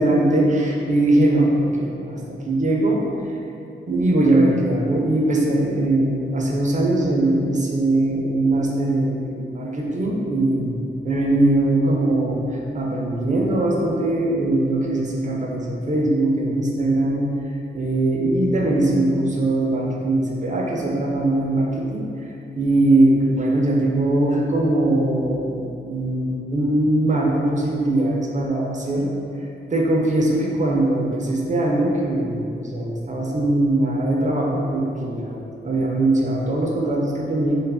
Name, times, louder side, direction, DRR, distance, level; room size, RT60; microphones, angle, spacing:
voice 1, 0.0-3.0 3.9-17.3 17.7-22.1 22.6-29.1 29.7-37.6, right 1 dB, 40° right, -1 dB, 0.5 m, -21 dB
2.3 x 2.0 x 3.4 m, 2.6 s
cardioid pair, 55°, 19 cm